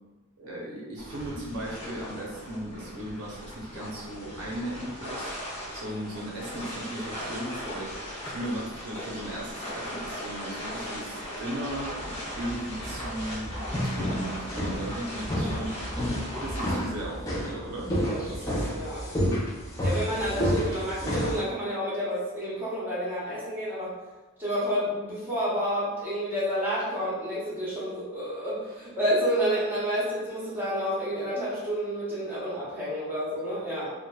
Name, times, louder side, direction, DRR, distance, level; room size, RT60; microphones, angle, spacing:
voice 1, 0.4-5.3 5.7-7.9 8.2-11.9 12.4-15.8 16.1-17.9 18.3-18.8, right 1 dB, 90° right, -4 dB, 0.7 m, -37 dB
sound 1, 1.0-16.8, equal, 30° left, 0.9 m, -38 dB
sound 2, 11.7-21.4, equal, 15° left, 0.4 m, -30 dB
voice 2, 18.0-19.0 19.8-23.9 24.4-33.9, equal, 10° right, -9 dB, 0.8 m, -30 dB
2.9 x 2.2 x 2.2 m, 1.2 s
head